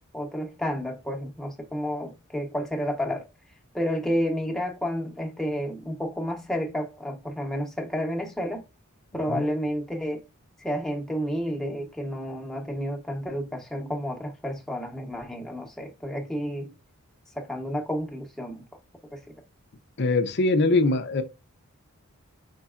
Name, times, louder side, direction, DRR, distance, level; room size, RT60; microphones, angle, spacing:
voice 1, 0.1-3.2 3.7-8.6 9.1-10.2 10.6-16.7 17.3-18.6 19.1-19.2, equal, ahead, 0.9 m, -30 dB
voice 2, 20.0-21.2, left 2 dB, 50° left, 0.6 m, -22 dB
5.2 x 4.1 x 2.4 m
head